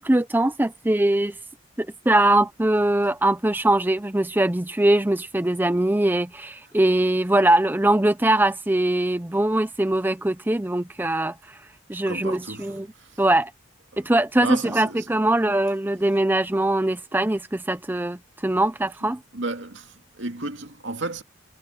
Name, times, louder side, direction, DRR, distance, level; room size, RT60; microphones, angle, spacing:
voice 1, 0.0-1.3 1.8-11.3 11.9-12.9 13.2-13.5 14.0-19.2, right 1 dB, 10° right, 0.5 m, -22 dB
voice 2, 12.1-13.2 13.9-14.1 14.4-15.1 19.3-21.2, right 2 dB, 70° right, 2.3 m, -33 dB
head